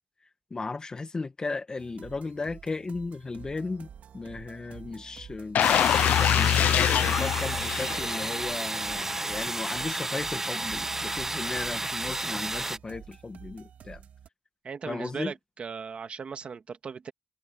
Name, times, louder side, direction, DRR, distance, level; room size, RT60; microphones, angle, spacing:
voice 1, 0.5-14.0 14.9-15.3, left 3 dB, 30° left, 1.7 m, -36 dB
sound 1, 1.8-14.3, right 8 dB, 80° right, 2.3 m, -49 dB
sound 2, 5.5-8.5 8.9-9.1, left 10 dB, 85° left, 0.3 m, -24 dB
sound 3, 5.6-12.8, right 2 dB, 15° right, 0.3 m, -32 dB
voice 2, 14.6-17.1, right 5 dB, 50° right, 1.8 m, -38 dB
cardioid pair, 115°, 3 cm